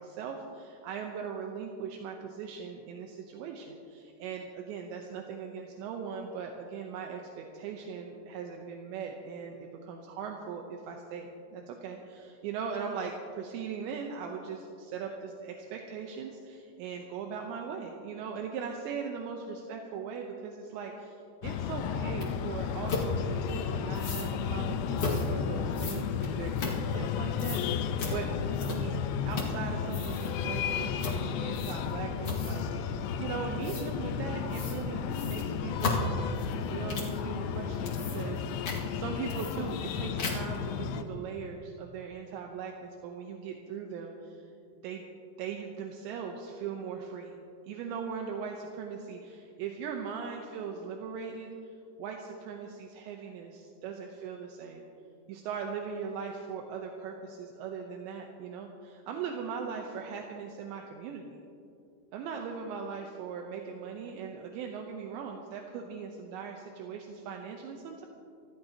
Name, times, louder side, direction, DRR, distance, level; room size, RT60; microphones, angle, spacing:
voice 1, 0.0-28.3 28.6-29.0 29.3-32.7 32.9-36.4 36.7-44.5 44.8-45.1 45.4-47.4 47.7-51.7 52.0-54.8 55.3-61.4 62.1-68.1, right 6 dB, 80° right, 2 dB, 3.1 m, -39 dB
Breathing, 21.4-41.0, left 7 dB, 80° left, 2.5 m, -33 dB
sound 1, 22.2-22.3 22.9-23.1 23.9-24.3 25.0-25.3 25.7-27.1 27.4-27.7 28.0-28.2 28.6-29.0 29.3-29.6 29.9-30.3 31.0-31.2 31.5-31.9 32.2-32.7 33.6-33.9 34.5-34.8 35.1-37.2 37.7-38.4 38.6-38.8 39.3-39.9 40.2-40.6, left 3 dB, 45° left, 2.1 m, -35 dB
26.0 x 14.5 x 2.9 m, 2.5 s
omnidirectional pair, 5.3 m